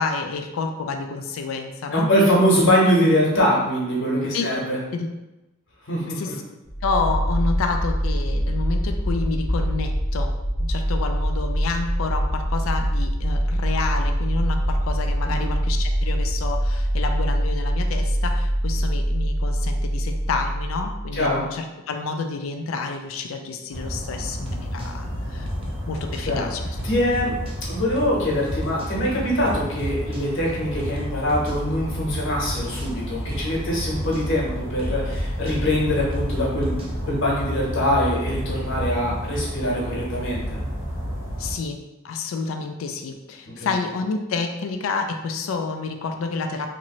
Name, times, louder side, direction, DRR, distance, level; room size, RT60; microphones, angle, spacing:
voice 1, 0.0-2.1 4.3-4.5 4.9-5.2 6.1-6.4 6.8-10.3 10.6-26.7 41.4-41.8 42.0-46.7, left 4 dB, 85° left, 5 dB, 0.4 m, -29 dB
voice 2, 1.9-4.8 5.9-6.3 15.2-15.5 21.1-21.4 26.3-26.5 26.8-27.3 27.7-40.6 43.6-43.7, equal, 65° left, -5 dB, 1.0 m, -23 dB
sound 1, 6.7-21.5, equal, 35° left, 0.8 m, -24 dB
sound 2, 23.7-41.5, equal, 70° right, 1.4 m, -31 dB
sound 3, 24.5-24.9 25.5-26.3 26.8-27.6 28.0-28.2 28.5-28.9 29.5-30.3 30.8-31.6 32.1-32.9 33.3-33.5 33.8-34.3 34.8-37.0, equal, 30° right, 0.5 m, -34 dB
3.0 x 2.7 x 2.9 m, 0.99 s
head